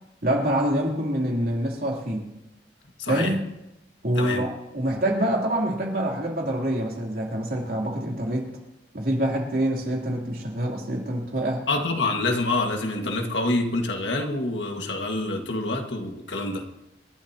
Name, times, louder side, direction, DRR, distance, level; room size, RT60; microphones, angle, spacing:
voice 1, 0.2-2.3 3.1-3.4 4.0-8.5 8.9-11.6, right 1 dB, 55° right, -1 dB, 3.2 m, -26 dB
voice 2, 3.0-3.3 4.2-4.5 11.7-16.6, left 2 dB, 80° left, 3 dB, 1.8 m, -26 dB
28.0 x 12.0 x 2.9 m, 0.92 s
head